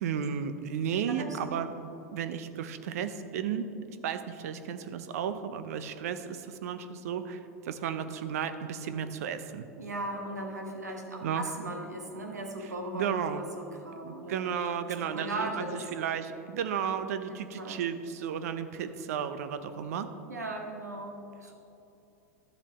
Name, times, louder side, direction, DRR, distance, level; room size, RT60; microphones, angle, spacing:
voice 1, 0.0-1.7 2.1-3.7 4.0-7.4 7.6-9.7 11.2-11.4 12.9-13.4 14.0-20.1, right 8 dB, 65° right, 10 dB, 0.6 m, -33 dB
voice 2, 1.1-1.4 9.8-14.4 15.1-15.8 16.8-17.0 17.3-17.8 20.3-21.5, right 2 dB, 90° right, 2 dB, 1.3 m, -38 dB
12.0 x 7.3 x 3.5 m, 2.9 s
hypercardioid pair, 90°, 9 cm